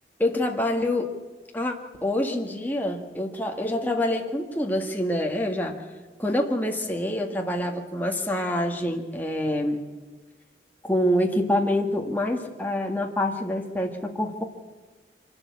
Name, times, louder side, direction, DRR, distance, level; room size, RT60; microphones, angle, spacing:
voice 1, 0.2-1.1 1.5-1.8 2.0-5.8 6.2-9.9 10.8-14.4, left 1 dB, 10° left, 2 dB, 1.8 m, -26 dB
25.5 x 12.5 x 8.4 m, 1.3 s
head